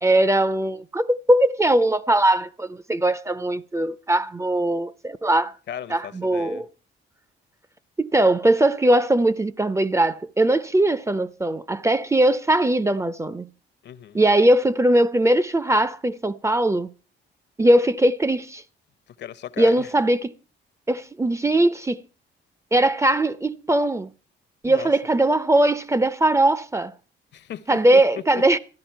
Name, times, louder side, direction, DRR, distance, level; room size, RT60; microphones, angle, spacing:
voice 1, 0.0-5.5 5.9-6.7 8.0-13.5 14.1-16.9 17.6-18.6 19.6-20.3 20.9-22.0 22.7-24.1 24.6-26.9 27.7-28.6, right 1 dB, 15° right, 0.5 m, -20 dB
voice 2, 5.7-6.6 13.8-14.2 19.2-19.9 24.6-24.9 27.3-28.0, left 10 dB, 60° left, 0.8 m, -36 dB
13.5 x 11.0 x 4.5 m
cardioid pair, 90°, 20 cm